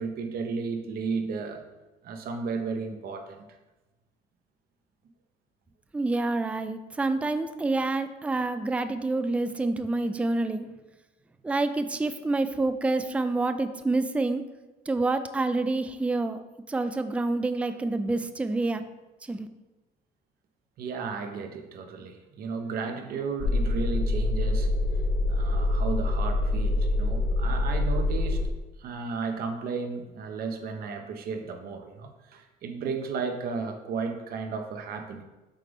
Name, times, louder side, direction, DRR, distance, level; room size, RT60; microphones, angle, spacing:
voice 1, 0.0-1.6 2.0-3.4 20.8-24.7 25.3-28.4 28.8-35.2, right 5 dB, 65° right, 5 dB, 0.8 m, -34 dB
voice 2, 5.9-10.7 11.4-14.4 14.9-16.4 16.7-18.8 19.3-19.5, right 2 dB, 5° right, 10 dB, 0.3 m, -27 dB
sound 1, 23.4-28.5, left 2 dB, 65° left, 1.6 m, -25 dB
7.4 x 3.8 x 3.4 m, 1.1 s
cardioid pair, 110°, 17 cm